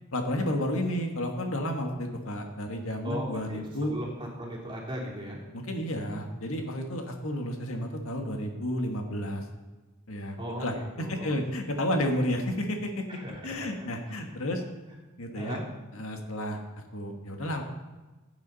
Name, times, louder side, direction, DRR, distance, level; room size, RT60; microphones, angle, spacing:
voice 1, 0.1-3.9 5.5-9.4 10.1-13.0 13.4-14.6 15.2-15.6 15.9-16.6 16.9-17.6, left 1 dB, 75° left, 3 dB, 1.7 m, -31 dB
voice 2, 3.0-5.4 10.4-11.4 13.1-13.7 14.1-14.2 15.3-15.6, equal, 25° right, -4 dB, 3.2 m, -37 dB
16.0 x 8.9 x 4.1 m, 1.2 s
head